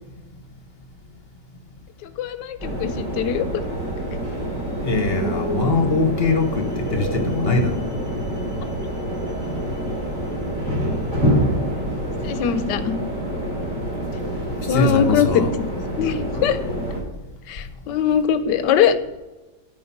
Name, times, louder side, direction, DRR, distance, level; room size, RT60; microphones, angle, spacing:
voice 1, 2.2-3.6 12.2-12.9 14.7-15.4 16.0-16.6 17.5-18.9, left 9 dB, 85° left, 1.3 m, -21 dB
sound 1, 2.6-17.0, equal, 50° right, 4.3 m, -26 dB
voice 2, 4.8-7.8 14.7-15.5, left 3 dB, 45° left, 1.0 m, -22 dB
9.6 x 5.3 x 5.8 m
omnidirectional pair, 1.8 m